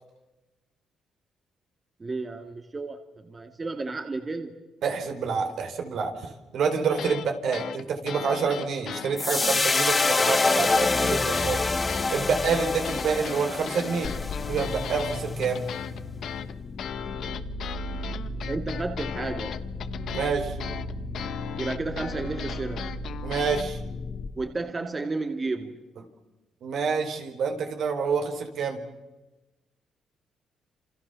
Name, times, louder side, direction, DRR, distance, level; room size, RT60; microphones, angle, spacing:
voice 1, 2.0-4.5 18.5-19.5 21.6-22.9 24.4-25.8, right 3 dB, 30° right, 6 dB, 2.3 m, -32 dB
voice 2, 4.8-14.1 14.5-15.7 20.1-20.6 23.2-23.8 26.6-28.8, right 5 dB, 70° right, 5 dB, 4.5 m, -28 dB
sound 1, 6.9-7.3 7.5-11.6 11.9-23.6, left 9 dB, 70° left, 1.3 m, -37 dB
sound 2, 9.2-15.6, left 3 dB, 25° left, 1.0 m, -26 dB
sound 3, 14.0-24.3, left 1 dB, 45° left, 2.5 m, -35 dB
29.0 x 28.0 x 7.0 m, 1.1 s
cardioid pair, 90°, 0 cm